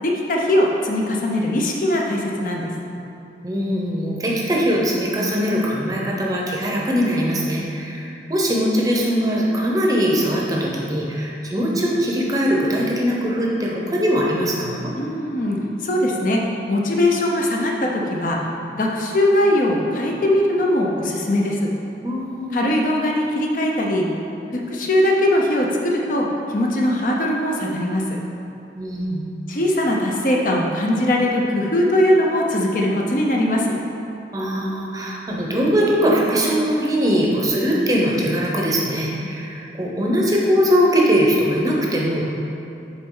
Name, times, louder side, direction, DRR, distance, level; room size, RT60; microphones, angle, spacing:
voice 1, 0.0-2.7 15.0-15.6 15.8-16.4 16.7-18.4 18.7-21.7 22.5-24.1 24.5-28.0 29.5-33.7 39.2-39.3, left 1 dB, 50° left, -1 dB, 0.6 m, -20 dB
voice 2, 3.4-14.9 22.0-22.8 28.8-29.2 34.3-42.3, equal, 20° right, -3 dB, 0.7 m, -21 dB
7.1 x 4.3 x 3.8 m, 2.8 s
head